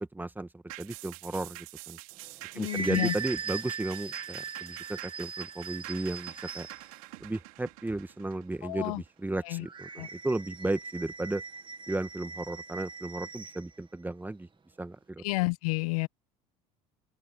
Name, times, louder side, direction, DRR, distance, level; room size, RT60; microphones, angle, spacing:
voice 1, 0.1-2.0 2.5-6.7 7.2-11.4 11.9-14.5 14.8-15.2, right 2 dB, 10° right, 1.6 m, -34 dB
sound 1, 0.7-9.4 9.8-9.9, right 24 dB, 80° right, 3.5 m, -47 dB
sound 2, 2.2-6.9 9.7-13.7, right 5 dB, 25° right, 2.2 m, -40 dB
voice 2, 2.5-3.1 8.6-9.0 9.4-9.7 10.0-10.1 15.2-16.1, left 24 dB, 80° left, 1.5 m, -30 dB
open air
hypercardioid pair, 80°, 18 cm